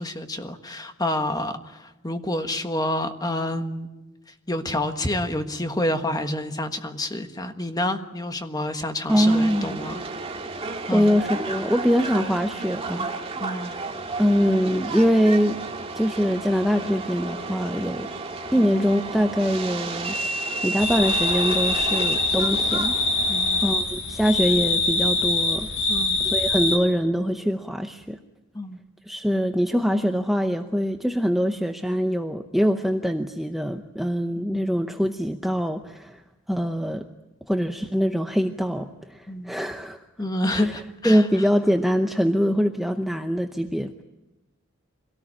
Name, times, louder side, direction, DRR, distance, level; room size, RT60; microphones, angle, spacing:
voice 1, 0.0-3.9 4.5-10.0 10.9-11.1 13.4-13.7 18.6-18.8 23.3-23.7 25.9-26.2 28.5-28.8 34.5-34.6 39.3-39.6 40.2-41.2, left 1 dB, 20° left, 7 dB, 1.5 m, -28 dB
voice 2, 9.1-9.8 10.9-13.1 14.2-15.6 15.9-18.1 18.5-23.3 23.6-25.7 26.2-28.2 29.1-36.2 36.5-37.0 37.5-40.0 40.5-40.7 41.0-44.0, equal, ahead, 5 dB, 0.8 m, -23 dB
Subway metro underground, 9.1-23.7, right 3 dB, 25° right, 2.0 m, -32 dB
sound 1, 20.8-26.8, left 2 dB, 60° left, 3.3 m, -24 dB
24.5 x 18.0 x 9.9 m, 1.0 s
head